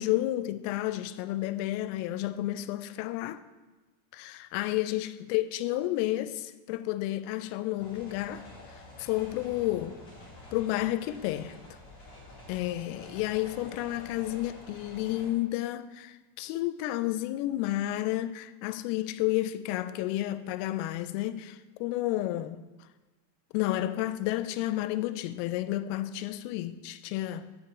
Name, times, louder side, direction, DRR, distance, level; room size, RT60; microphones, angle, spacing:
voice 1, 0.0-3.4 4.1-8.4 9.0-10.0 10.5-11.5 12.5-22.6 23.5-27.4, left 15 dB, 90° left, 3.2 m, -31 dB
sound 1, 7.8-15.3, left 2 dB, 35° left, 2.9 m, -49 dB
7.7 x 6.8 x 8.1 m
omnidirectional pair, 5.8 m